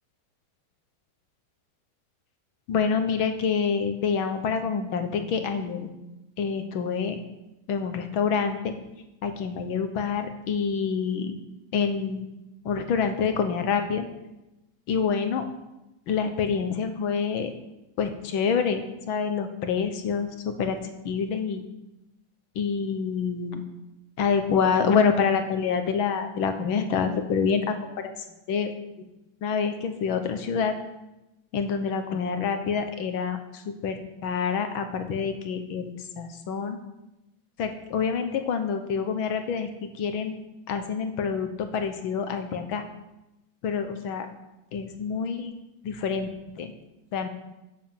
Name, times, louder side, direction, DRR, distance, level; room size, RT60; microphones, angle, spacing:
voice 1, 2.7-5.9 6.4-7.2 7.7-8.8 9.2-11.4 11.7-12.3 12.7-14.1 14.9-15.4 16.1-17.5 18.0-20.8 21.0-21.6 22.6-23.6 24.2-27.7 28.5-28.7 29.0-29.1 29.4-30.8 31.5-36.8 37.6-40.3 40.7-42.9 43.6-44.3 44.7-45.5 45.8-46.3 46.6-46.7 47.1-47.3, left 6 dB, 75° left, 7 dB, 1.9 m, -27 dB
11.5 x 7.3 x 7.3 m, 0.95 s
omnidirectional pair, 2.3 m